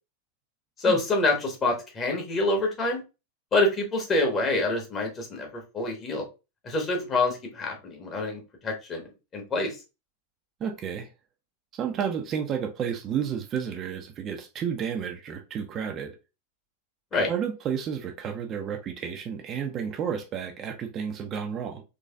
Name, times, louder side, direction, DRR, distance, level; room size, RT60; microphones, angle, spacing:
voice 1, 0.8-3.0 3.5-6.2 6.6-9.8 17.1-17.3, left 2 dB, 25° left, 2 dB, 1.3 m, -26 dB
voice 2, 10.6-11.1 11.8-16.1 17.1-21.8, right 7 dB, 30° right, 4 dB, 0.6 m, -31 dB
3.9 x 3.1 x 2.4 m, 0.28 s
figure-of-eight pair, 90°, 0 cm